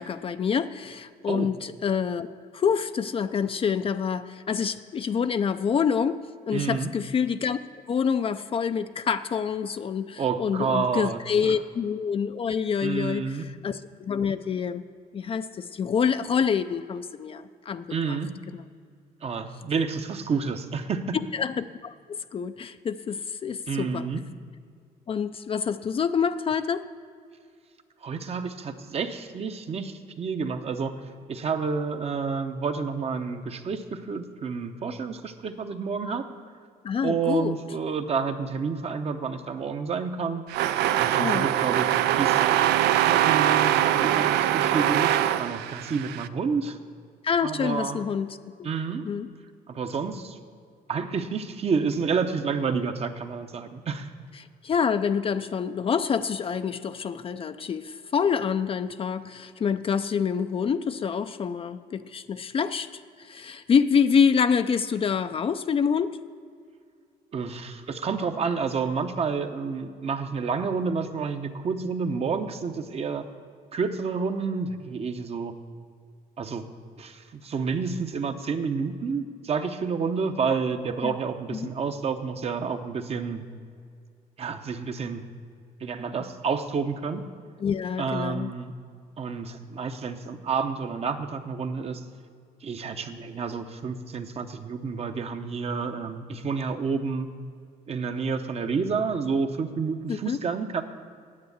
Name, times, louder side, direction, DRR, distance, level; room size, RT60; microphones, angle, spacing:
voice 1, 0.0-2.3 2.5-7.6 7.9-14.8 15.1-18.2 18.5-18.6 21.3-21.9 22.3-24.0 25.1-26.8 36.8-37.6 41.2-41.5 47.2-48.7 49.0-49.3 54.6-66.2 81.0-81.2 81.5-81.7 87.6-88.5 100.1-100.4, left 6 dB, 35° left, 10 dB, 0.4 m, -27 dB
voice 2, 6.5-6.9 10.2-11.5 12.8-13.5 17.9-18.3 19.2-21.1 23.7-24.2 28.0-30.9 31.3-36.2 37.0-40.4 41.0-46.8 47.4-48.0 48.6-49.1 49.7-50.4 50.9-54.1 67.3-73.2 73.7-75.5 76.4-76.7 77.0-83.4 84.4-85.2 85.8-87.2 88.0-88.7 89.2-92.0 92.6-97.3 97.9-100.8, right 5 dB, 35° right, 7 dB, 0.9 m, -29 dB
sound 1, 40.5-46.3, right 12 dB, 80° right, 0.5 m, -23 dB
9.6 x 8.2 x 8.1 m, 2.2 s
cardioid pair, 110°, 17 cm